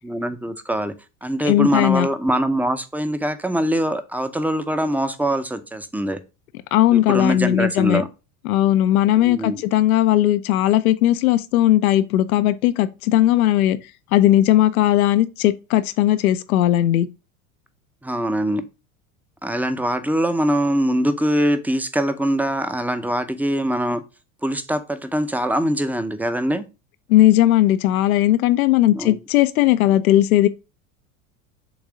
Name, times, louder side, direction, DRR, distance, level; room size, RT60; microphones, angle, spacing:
voice 1, 0.0-0.9 1.2-6.2 6.9-8.1 9.2-9.6 18.0-18.7 19.4-24.0 24.4-26.6 28.9-29.2, right 1 dB, 5° right, 0.6 m, -23 dB
voice 2, 1.4-2.1 6.7-8.0 8.4-13.8 14.1-17.1 27.1-30.5, left 13 dB, 80° left, 0.6 m, -17 dB
7.1 x 2.7 x 5.0 m
hypercardioid pair, 90°, 42 cm